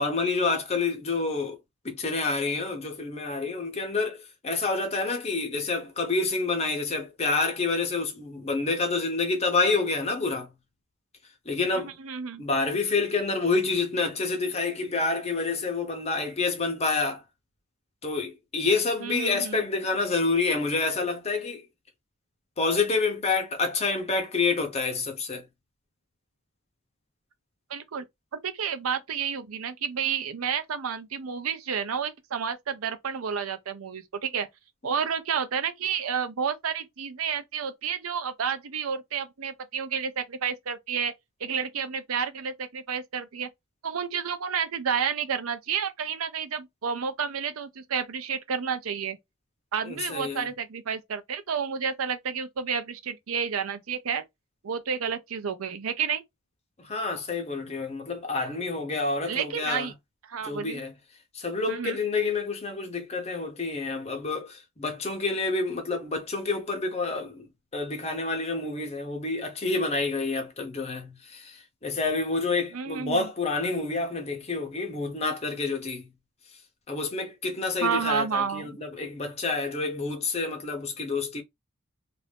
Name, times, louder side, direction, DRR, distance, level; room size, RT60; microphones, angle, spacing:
voice 1, 0.0-1.6 1.8-10.5 11.4-11.9 12.4-17.2 18.0-21.6 22.6-25.4 49.8-50.5 56.8-59.9 60.4-60.9 61.3-76.1 76.9-81.4, left 3 dB, 30° left, 0.8 m, -28 dB
voice 2, 11.8-12.4 19.0-19.6 27.7-28.0 28.3-34.5 34.8-41.1 41.4-43.5 43.8-49.2 49.7-54.2 54.6-56.2 59.2-59.9 60.3-60.8 61.7-62.0 72.7-73.3 77.8-78.7, right 7 dB, 85° right, 0.6 m, -30 dB
2.6 x 2.5 x 3.3 m
head